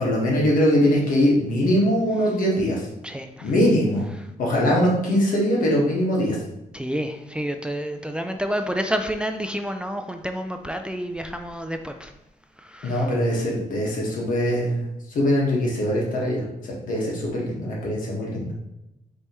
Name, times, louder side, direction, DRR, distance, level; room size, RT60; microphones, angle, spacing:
voice 1, 0.0-2.9 3.4-4.0 4.4-6.4 12.8-14.9 15.1-16.4 16.8-18.5, equal, 80° left, -4 dB, 1.5 m, -22 dB
voice 2, 3.0-3.5 6.7-12.1 12.6-13.1, equal, 5° right, 6 dB, 0.4 m, -29 dB
5.1 x 3.3 x 3.0 m, 0.90 s
cardioid pair, 85°, 14 cm